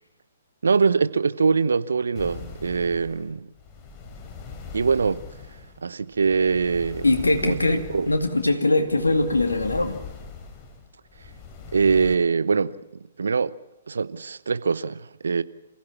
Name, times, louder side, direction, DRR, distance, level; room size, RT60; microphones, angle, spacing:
voice 1, 0.6-3.5 4.7-5.2 5.8-7.1 7.4-7.6 7.9-8.1 11.7-12.8 13.2-13.5 13.9-15.4, right 5 dB, 70° right, 0.9 m, -23 dB
sound 1, 2.2-12.2, left 5 dB, 25° left, 4.1 m, -41 dB
voice 2, 7.0-10.0, left 2 dB, 85° left, 2.3 m, -22 dB
28.0 x 16.0 x 7.3 m
figure-of-eight pair, 120°, 0 cm